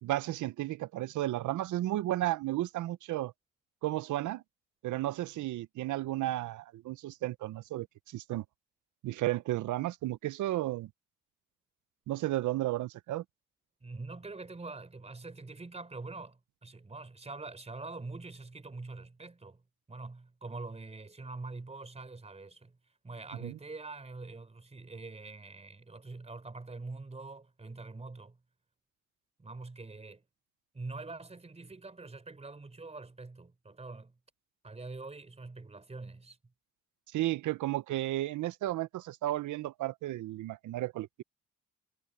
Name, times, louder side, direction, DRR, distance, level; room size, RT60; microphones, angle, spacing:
voice 1, 0.0-3.3 3.8-4.4 4.8-8.4 9.0-10.9 12.1-13.2 23.4-23.5 37.1-41.2, right 15 dB, 75° right, 0.8 m, -33 dB
voice 2, 13.8-19.6 19.9-22.8 23.0-28.4 29.4-30.2 30.7-34.1 34.6-36.4, right 3 dB, 20° right, 3.8 m, -44 dB
cardioid pair, 90°, 30 cm